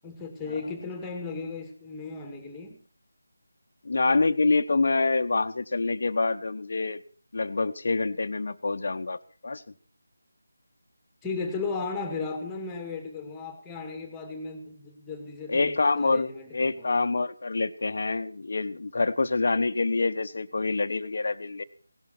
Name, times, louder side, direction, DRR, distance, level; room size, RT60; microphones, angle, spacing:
voice 1, 0.0-2.8 11.2-17.0, left 4 dB, 5° left, 5 dB, 2.0 m, -35 dB
voice 2, 3.8-7.0 7.3-9.6 15.5-21.6, left 3 dB, 50° left, 11 dB, 1.0 m, -26 dB
17.5 x 12.0 x 4.4 m, 0.39 s
figure-of-eight pair, 165°, 0 cm